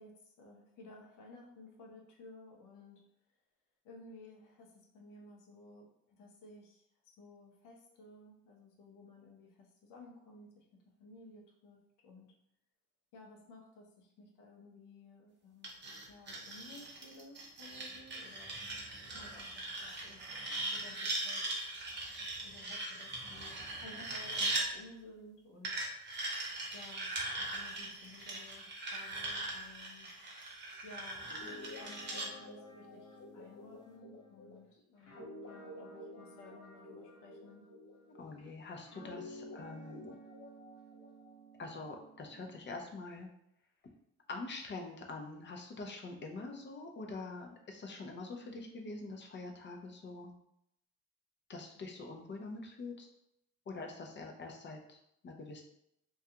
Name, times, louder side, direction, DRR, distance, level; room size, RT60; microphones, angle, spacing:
voice 1, 0.0-3.0 3.8-10.6 11.0-12.3 13.1-15.8 16.1-18.5 19.0-21.5 22.4-25.8 26.1-26.4 26.7-30.1 30.8-37.6, left 2 dB, 90° left, 0 dB, 0.7 m, -56 dB
sound 1, 15.6-24.7 25.6-32.3, right 2 dB, 35° right, 0.7 m, -40 dB
Guitar, 31.2-38.4 38.9-42.6, left 1 dB, 65° left, 0.9 m, -51 dB
voice 2, 38.1-40.1 41.6-43.3 44.3-50.3 51.5-53.1 53.7-55.6, left 3 dB, 40° left, 2 dB, 0.5 m, -45 dB
2.3 x 2.3 x 2.8 m, 0.77 s
cardioid pair, 90°, 30 cm